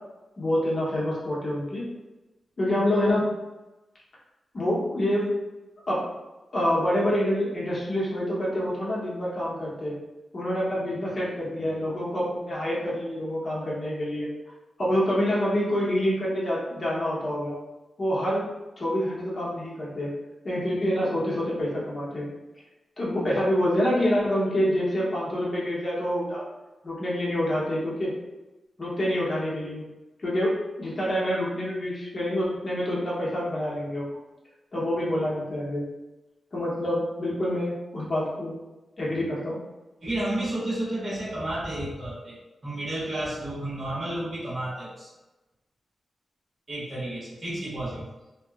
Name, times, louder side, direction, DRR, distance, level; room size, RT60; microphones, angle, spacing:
voice 1, 0.4-1.8 2.6-3.2 4.5-5.3 5.9-6.1 6.5-9.9 10.3-14.3 14.8-17.6 18.0-18.5 18.8-20.1 20.4-22.3 23.0-26.4 26.8-28.1 28.8-29.8 30.2-30.5 30.8-34.1 34.7-35.9 36.5-38.5 39.0-39.6, equal, 40° left, -6 dB, 0.9 m, -27 dB
voice 2, 40.0-42.4 42.6-45.1 46.7-48.0, right 1 dB, 45° right, -8 dB, 1.1 m, -31 dB
2.8 x 2.2 x 2.4 m, 1.1 s
wide cardioid pair, 105°, 0 cm